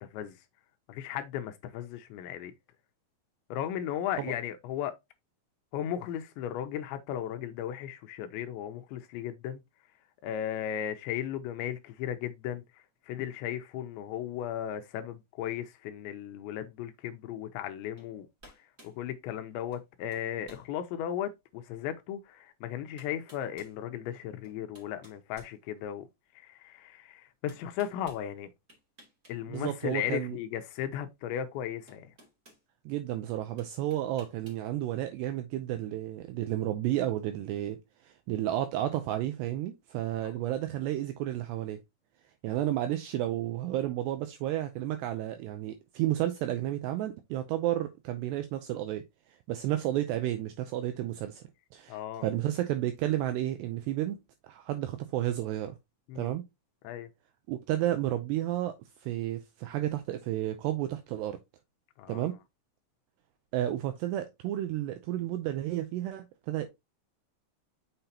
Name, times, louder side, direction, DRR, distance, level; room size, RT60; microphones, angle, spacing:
voice 1, 0.0-0.4 0.9-2.5 3.5-4.9 5.7-9.6 10.2-18.3 18.6-26.1 26.3-28.5 29.3-32.1 40.2-40.3 51.9-52.3 56.1-56.3 56.8-57.1 62.0-62.3, left 10 dB, 80° left, 2.8 m, -36 dB
sound 1, 18.0-18.1 18.4-19.0 19.7-19.9 20.1-20.7 21.3-21.4 22.5-22.6 23.0-23.8 24.4-26.1 27.5-28.2 28.7-29.4 29.7-29.8 31.2-31.3 31.9-32.6 33.6-34.6, right 1 dB, 25° right, 2.0 m, -56 dB
voice 2, 29.5-30.4 32.9-37.8 38.0-41.8 42.4-49.0 49.5-51.4 51.7-54.2 54.5-55.7 56.2-56.4 57.5-58.7 59.0-61.4 62.1-62.3 63.5-66.7, right 13 dB, 85° right, 2.4 m, -32 dB
6.8 x 5.8 x 2.8 m
omnidirectional pair, 5.5 m